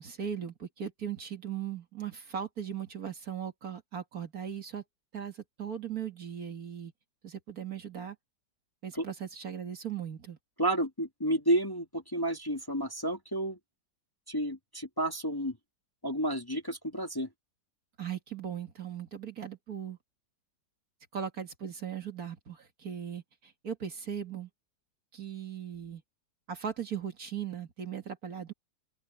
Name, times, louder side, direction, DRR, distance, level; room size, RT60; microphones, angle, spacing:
voice 1, 0.0-4.8 5.1-6.9 7.2-8.2 8.8-10.4 18.0-20.0 21.1-24.5 25.1-26.0 26.5-28.5, right 8 dB, 55° right, 2.3 m, -38 dB
voice 2, 10.6-13.6 14.3-15.6 16.0-17.3, right 1 dB, 10° left, 1.8 m, -31 dB
open air
omnidirectional pair, 1.9 m